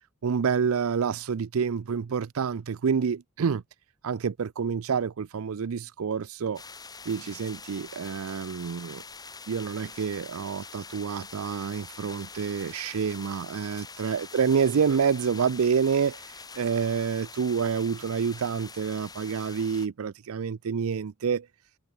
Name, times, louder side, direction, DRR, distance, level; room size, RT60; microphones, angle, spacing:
voice 1, 0.2-3.6 4.0-6.6 7.1-9.0 9.5-16.2 16.6-21.5, right 6 dB, 70° right, 0.5 m, -28 dB
sound 1, 6.5-19.9, left 4 dB, 20° left, 1.7 m, -45 dB
head